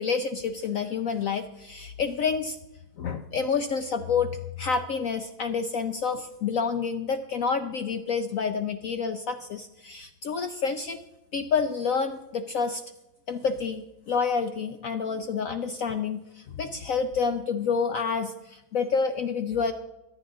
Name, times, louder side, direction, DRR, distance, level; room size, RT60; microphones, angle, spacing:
voice 1, 0.0-2.6 3.0-4.3 4.6-11.0 11.3-12.8 13.3-19.7, left 5 dB, 70° left, 8 dB, 0.8 m, -28 dB
24.0 x 9.4 x 3.7 m, 0.94 s
omnidirectional pair, 2.2 m